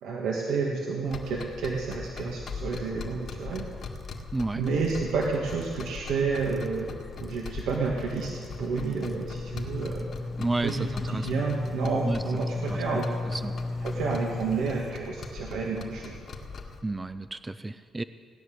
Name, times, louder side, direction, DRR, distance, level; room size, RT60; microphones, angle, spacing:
voice 1, 0.0-3.6 4.6-6.9 7.2-10.1 10.6-13.1 13.8-16.2, right 4 dB, 85° right, -1 dB, 1.7 m, -30 dB
sound 1, 1.0-16.8, left 4 dB, 55° left, 1.8 m, -41 dB
sound 2, 3.8-4.4 4.6-5.0 5.6-6.0 6.4-14.9, left 3 dB, 20° left, 0.8 m, -35 dB
voice 2, 4.3-4.6 10.3-11.3 12.0-12.2 12.7-13.0 13.3-13.5 16.8-18.0, right 2 dB, 20° right, 11 dB, 0.5 m, -31 dB
17.5 x 10.0 x 7.8 m, 2.2 s
cardioid pair, 90°, 0 cm